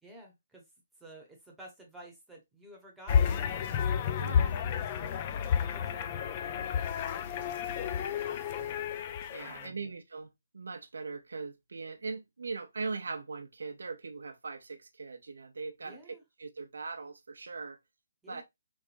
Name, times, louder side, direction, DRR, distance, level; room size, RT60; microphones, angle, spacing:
voice 1, 0.0-0.7 1.0-5.2 5.6-8.8 9.4-9.9 15.8-16.2 18.2-18.4, right 1 dB, 5° right, 1.0 m, -53 dB
sound 1, 3.1-9.7, left 8 dB, 35° left, 0.4 m, -31 dB
voice 2, 4.2-4.5 9.3-10.3 10.5-16.0 16.4-17.8 18.3-18.4, right 4 dB, 85° right, 0.6 m, -40 dB
3.4 x 3.1 x 2.5 m
hypercardioid pair, 155°, 0 cm